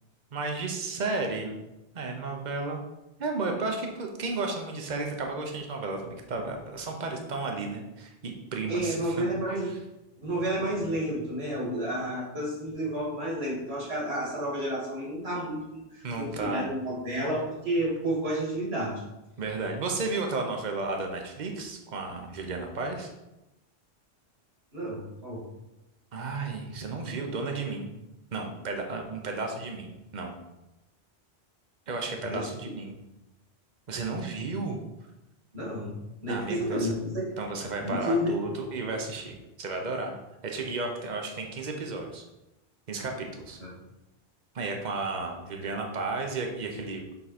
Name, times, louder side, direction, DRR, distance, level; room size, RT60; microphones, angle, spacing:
voice 1, 0.3-1.6 1.9-2.8 3.2-9.3 9.6-9.7 16.0-16.7 19.4-23.1 26.1-27.9 28.3-30.3 31.9-32.9 33.9-34.8 36.3-36.9 37.4-40.2 40.4-42.2 42.9-43.6 44.5-47.0, right 3 dB, 45° right, 3 dB, 1.0 m, -33 dB
voice 2, 8.7-9.7 10.2-19.0 24.7-25.4 32.2-32.5 35.5-37.3 37.8-38.4 43.6-43.7, equal, 70° right, -4 dB, 2.3 m, -31 dB
7.0 x 3.8 x 4.3 m, 0.96 s
omnidirectional pair, 1.1 m